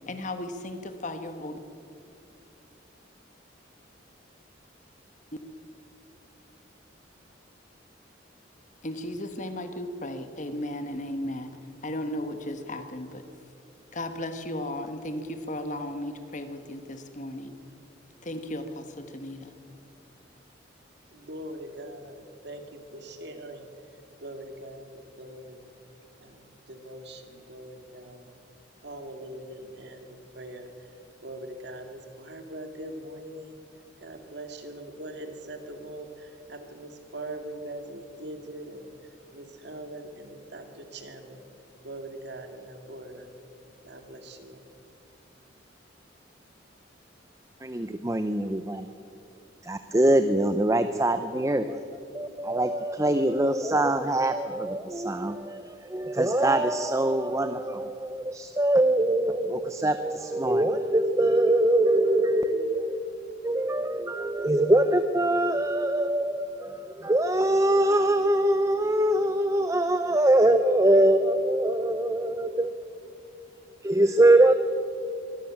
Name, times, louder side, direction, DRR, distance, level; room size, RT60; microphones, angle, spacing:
voice 1, 0.1-1.6 8.8-11.5 11.8-13.2 13.9-17.5 18.2-19.5, left 1 dB, 40° left, 8 dB, 1.5 m, -35 dB
voice 2, 21.3-22.2 22.4-22.6 22.9-23.6 24.2-24.9 25.2-25.6 26.7-27.2 27.5-28.2 28.8-30.0 30.4-30.6 31.2-33.6 34.0-36.1 36.5-38.9 39.3-40.6 40.9-41.4 41.8-43.2 43.9-44.5, right 1 dB, 60° right, 6 dB, 2.3 m, -41 dB
voice 3, 47.6-48.9 49.6-51.8 52.1-72.7 73.8-74.5, right 1 dB, 15° right, 10 dB, 0.6 m, -23 dB
23.5 x 13.0 x 8.7 m, 2.6 s
head